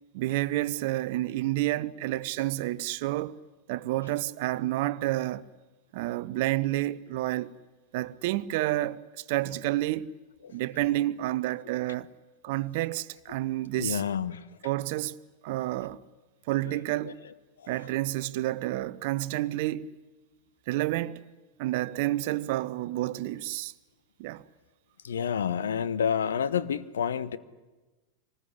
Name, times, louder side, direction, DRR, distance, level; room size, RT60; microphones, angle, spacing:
voice 1, 0.1-3.4 3.7-5.5 5.9-7.5 7.9-10.1 10.5-12.1 12.4-14.0 14.6-15.2 15.4-16.0 16.5-17.2 17.7-19.9 20.7-21.2 21.6-23.7 24.2-24.4, right 16 dB, 50° right, 0.7 m, -29 dB
voice 2, 13.8-14.4 17.0-17.1 17.6-17.7 25.0-27.4, left 8 dB, 65° left, 1.0 m, -29 dB
24.5 x 20.0 x 9.9 m
figure-of-eight pair, 90°, 0 cm